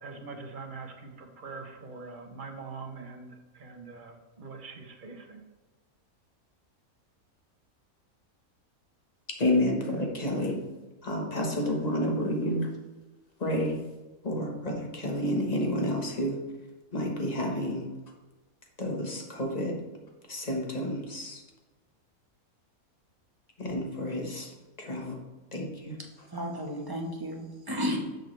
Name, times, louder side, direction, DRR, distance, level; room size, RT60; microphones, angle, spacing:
voice 1, 0.0-5.4, right 4 dB, 35° right, 3 dB, 1.1 m, -43 dB
voice 2, 9.4-10.6 11.0-12.7 13.4-13.8 14.2-16.4 16.9-17.8 18.8-19.8 20.3-21.4 23.6-24.5 24.8-25.2 25.5-26.0, left 1 dB, 30° left, 0 dB, 1.6 m, -30 dB
voice 3, 26.3-28.0, equal, 15° right, 0 dB, 1.3 m, -33 dB
10.0 x 6.8 x 3.4 m, 1.2 s
omnidirectional pair, 1.5 m